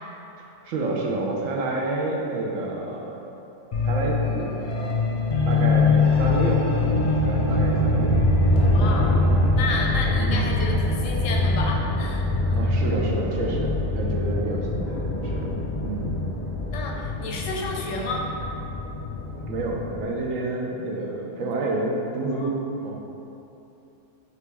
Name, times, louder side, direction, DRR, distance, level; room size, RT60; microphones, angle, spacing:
voice 1, 0.4-3.2 3.8-4.5 5.5-8.1 8.5-8.7 10.2-10.6 12.5-15.5 15.8-16.1 19.4-23.0, right 2 dB, 90° right, -1 dB, 1.0 m, -29 dB
sound 1, 3.7-20.0, left 2 dB, 55° left, 0.6 m, -23 dB
voice 2, 8.7-9.1 9.5-12.6 16.7-18.3 21.3-21.5 22.3-22.5, left 3 dB, 80° left, 0 dB, 1.0 m, -31 dB
3.9 x 3.0 x 3.3 m, 2.9 s
omnidirectional pair, 1.4 m